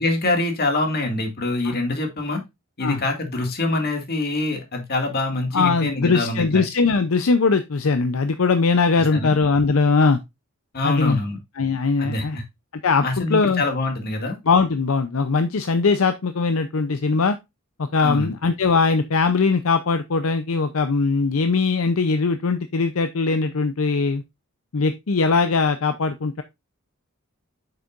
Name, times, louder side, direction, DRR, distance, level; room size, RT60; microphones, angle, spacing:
voice 1, 0.0-2.4 2.8-6.6 9.1-9.3 10.7-11.4 12.0-12.4 13.0-14.4 18.0-18.3, left 2 dB, 45° left, 2.1 m, -25 dB
voice 2, 5.5-10.2 10.8-11.2 11.6-12.4 12.8-13.6 14.5-17.4 17.8-24.2 24.7-26.4, left 4 dB, 70° left, 0.6 m, -20 dB
8.1 x 6.7 x 2.5 m
head